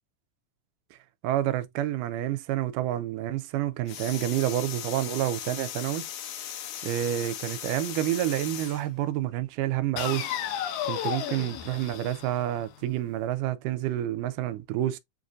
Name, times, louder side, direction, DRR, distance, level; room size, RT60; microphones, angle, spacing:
voice 1, 1.2-6.1 6.8-10.3 10.9-15.0, right 13 dB, 80° right, 2.1 m, -29 dB
sound 1, 3.9-8.8 10.0-12.9, left 10 dB, 75° left, 2.1 m, -36 dB
7.0 x 2.5 x 2.5 m
omnidirectional pair, 3.8 m